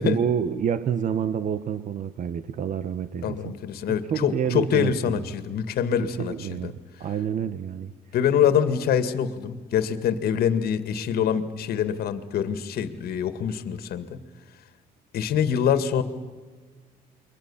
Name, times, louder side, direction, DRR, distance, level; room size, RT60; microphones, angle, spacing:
voice 1, 0.0-3.5 4.1-5.2 6.0-7.9, right 8 dB, 50° right, 13 dB, 1.1 m, -28 dB
voice 2, 3.2-6.7 8.1-14.2 15.1-16.0, left 8 dB, 65° left, 11 dB, 2.1 m, -25 dB
28.5 x 23.0 x 7.2 m, 1.4 s
cardioid pair, 110°, 17 cm